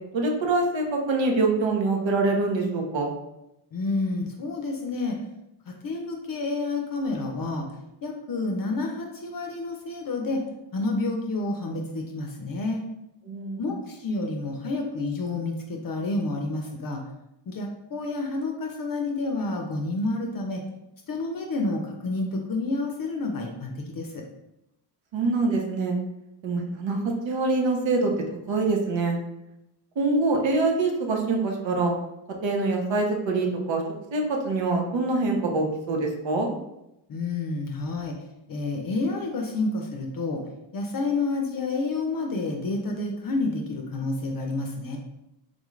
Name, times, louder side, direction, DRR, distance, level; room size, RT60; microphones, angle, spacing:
voice 1, 0.1-3.1 13.3-13.7 25.1-26.0 26.4-28.1 28.5-29.2 30.0-31.9 32.4-33.8 34.1-36.5, right 3 dB, 85° right, 1 dB, 0.8 m, -24 dB
voice 2, 3.7-5.2 5.7-7.7 8.0-10.4 10.7-12.8 13.6-17.0 17.5-20.6 21.1-24.2 37.1-38.2 38.5-40.4 40.7-45.0, left 3 dB, 50° left, 2 dB, 0.5 m, -29 dB
3.7 x 2.4 x 3.1 m, 0.88 s
wide cardioid pair, 115°, 44 cm